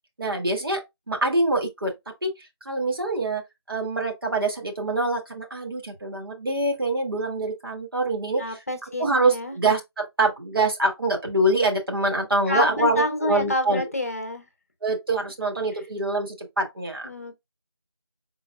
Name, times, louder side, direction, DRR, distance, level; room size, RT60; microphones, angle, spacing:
voice 1, 0.2-1.9 2.2-2.3 2.7-3.4 3.7-8.6 9.0-13.9 14.8-17.1, right 2 dB, 55° right, 1.8 m, -25 dB
voice 2, 8.4-9.6 12.5-14.5 17.0-17.4, left 1 dB, 35° left, 0.8 m, -28 dB
4.7 x 4.0 x 2.3 m
figure-of-eight pair, 170°, 14 cm